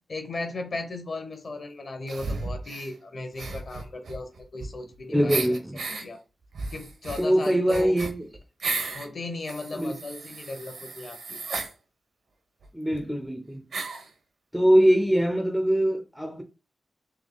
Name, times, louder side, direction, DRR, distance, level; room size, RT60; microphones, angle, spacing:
voice 1, 0.1-5.4 5.9-6.2 6.7-7.9 8.9-11.4, left 3 dB, 45° left, 1.0 m, -36 dB
Female Fake Crying, 2.1-2.9 3.3-4.9 5.3-6.0 6.5-9.1 9.5-11.7 12.6-12.7 12.9-13.0 13.7-14.1, right 3 dB, 75° right, 0.9 m, -34 dB
voice 2, 5.1-5.8 7.2-8.3 9.7-10.0 12.7-13.7 14.5-16.4, equal, ahead, 0.5 m, -23 dB
3.5 x 3.2 x 3.9 m
wide cardioid pair, 175°, 0 cm